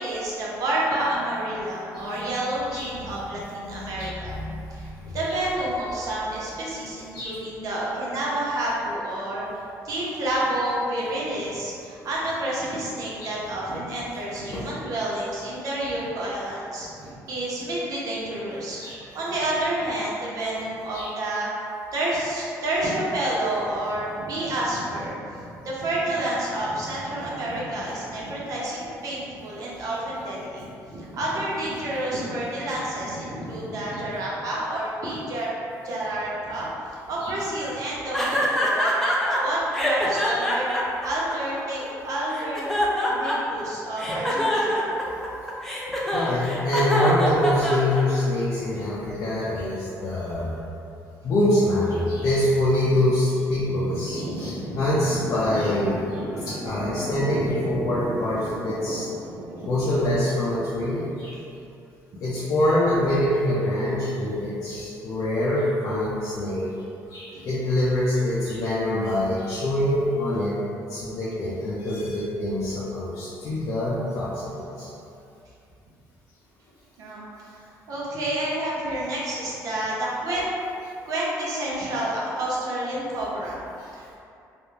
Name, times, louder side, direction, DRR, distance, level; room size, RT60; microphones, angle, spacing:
voice 1, 0.0-4.4 4.7-35.5 35.8-40.7 41.0-42.7 43.1-44.9 53.7-60.1 60.5-61.1 77.0-77.5 77.9-80.5 81.0-83.6 83.9-84.1, right 1 dB, 60° right, -6 dB, 0.7 m, -29 dB
voice 2, 2.7-3.2 3.7-5.2 7.1-7.4 10.3-10.4 13.2-13.4 14.5-14.6 18.8-19.0 20.9-21.1 29.8-29.9 31.9-32.0 37.2-37.3 40.2-40.4 46.1-50.5 51.2-59.1 59.7-61.3 62.2-66.7 67.1-70.6 70.9-74.9 83.8-83.9, left 1 dB, 55° left, -9 dB, 0.5 m, -25 dB
sound 1, 38.1-39.4 39.7-41.9 42.3-43.6 44.0-48.2, equal, 5° left, 0.4 m, -25 dB
2.4 x 2.1 x 3.1 m, 2.6 s
cardioid pair, 105°, 7 cm